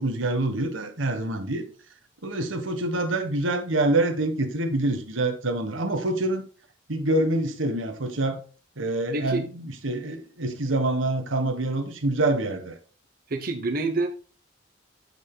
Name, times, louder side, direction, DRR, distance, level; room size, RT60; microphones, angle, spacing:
voice 1, 0.0-1.6 2.2-6.4 6.9-8.4 8.8-12.8, right 2 dB, 85° right, 1.3 m, -26 dB
voice 2, 9.1-9.4 13.3-14.1, right 3 dB, 50° right, 0.8 m, -27 dB
8.3 x 8.1 x 2.2 m
head